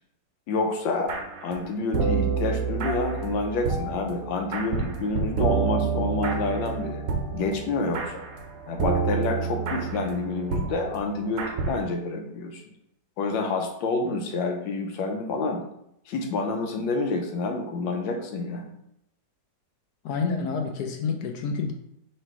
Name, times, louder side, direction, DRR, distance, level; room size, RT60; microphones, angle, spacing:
voice 1, 0.5-1.1 1.4-7.0 7.3-8.3 8.7-12.6 13.2-15.6 16.1-18.7, left 3 dB, 85° left, 3 dB, 1.4 m, -28 dB
sound 1, 1.1-1.6 1.9-11.8, right 5 dB, 65° right, 0.8 m, -29 dB
voice 2, 20.0-21.7, left 5 dB, 70° left, 3 dB, 0.9 m, -28 dB
3.2 x 3.0 x 4.6 m, 0.76 s
omnidirectional pair, 2.0 m